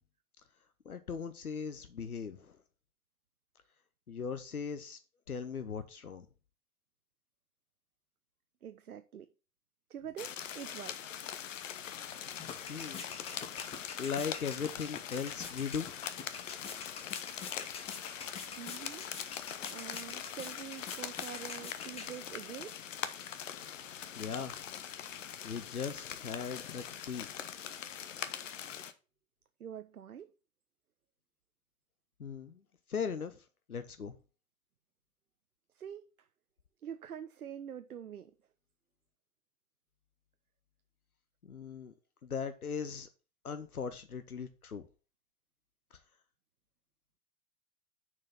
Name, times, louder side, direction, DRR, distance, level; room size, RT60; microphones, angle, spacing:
voice 1, 0.8-2.6 4.1-5.0 5.3-6.3 12.4-13.1 14.0-15.9 24.2-24.5 25.4-27.3 32.2-32.6 32.9-33.4 33.7-34.1 41.4-41.9 42.2-43.1 43.4-44.8 45.9-46.0, left 6 dB, 90° left, 0.8 m, -39 dB
voice 2, 8.6-9.3 9.9-11.2 18.6-19.1 19.7-22.8 29.6-30.3 35.7-36.3 36.8-38.3, right 9 dB, 85° right, 0.6 m, -45 dB
sound 1, 10.2-28.9, left 9 dB, 60° left, 0.9 m, -42 dB
sound 2, 11.9-22.6, left 5 dB, 15° left, 0.8 m, -47 dB
6.3 x 4.6 x 5.6 m
figure-of-eight pair, 105°, 43 cm